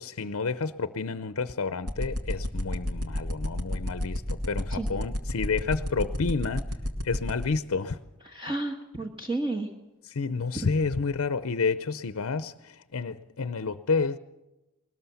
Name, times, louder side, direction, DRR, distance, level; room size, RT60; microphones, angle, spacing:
voice 1, 0.0-6.6 7.0-8.0 10.0-14.2, left 4 dB, 70° left, 0.6 m, -30 dB
sound 1, 1.9-7.4, left 1 dB, 80° right, 2.4 m, -28 dB
voice 2, 8.2-9.7 10.6-10.7, right 2 dB, 20° right, 1.4 m, -32 dB
21.0 x 19.5 x 7.0 m
head